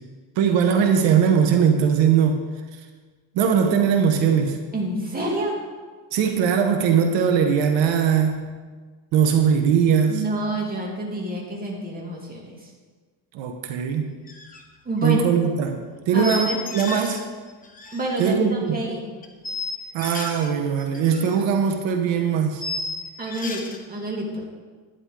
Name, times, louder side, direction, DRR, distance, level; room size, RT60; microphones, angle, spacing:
voice 1, 0.4-2.4 3.3-4.6 6.1-8.4 9.1-10.2 13.3-14.1 15.0-15.8 16.1-17.2 18.2-18.8 19.9-22.7, right 7 dB, 85° right, 5 dB, 1.2 m, -20 dB
voice 2, 4.7-5.6 10.1-12.5 14.9-15.2 16.1-16.6 17.9-19.1 23.2-24.5, right 1 dB, 20° right, -2 dB, 2.4 m, -28 dB
sound 1, 14.3-14.6 14.9-15.1 16.2-17.2 17.5-18.3 19.2-20.5 20.8-21.4 21.7-21.8 22.6-23.8, left 2 dB, 20° left, 1.2 m, -33 dB
11.0 x 9.8 x 3.8 m, 1.4 s
cardioid pair, 135°, 43 cm